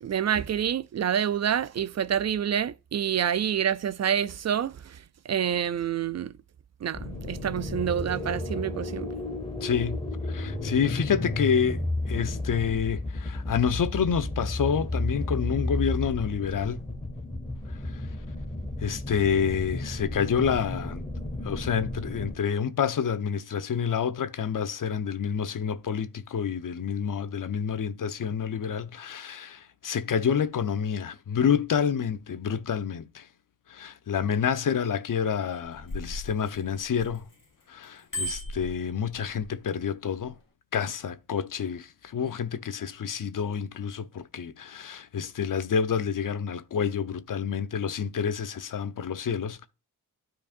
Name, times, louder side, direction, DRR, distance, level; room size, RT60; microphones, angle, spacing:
voice 1, 0.0-5.0 5.3-6.3 6.8-9.1, right 9 dB, 45° right, 0.4 m, -27 dB
sound 1, 6.9-22.3, left 1 dB, 15° left, 1.6 m, -33 dB
voice 2, 9.6-16.9 17.9-18.0 18.8-21.0 21.4-33.3 33.7-37.3 37.7-40.3 40.7-49.7, left 7 dB, 60° left, 0.7 m, -28 dB
Bicycle bell, 35.5-37.4 37.8-39.5 40.1-40.3, equal, 30° left, 2.4 m, -37 dB
12.0 x 4.7 x 2.5 m
cardioid pair, 45°, 37 cm